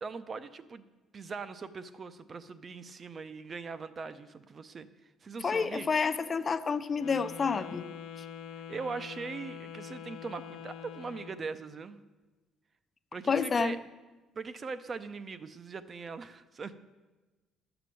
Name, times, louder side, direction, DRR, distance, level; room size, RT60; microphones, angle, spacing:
voice 1, 0.0-0.8 1.1-5.9 8.7-12.0 13.1-13.8 14.3-16.8, right 4 dB, 25° right, 13 dB, 0.5 m, -41 dB
voice 2, 5.4-7.8 13.3-13.8, left 5 dB, 25° left, 12 dB, 0.5 m, -29 dB
Wind instrument woodwind instrument, 6.9-11.5, left 8 dB, 80° left, 0.9 m, -44 dB
11.5 x 6.9 x 7.6 m, 1.2 s
cardioid pair, 165°, 0 cm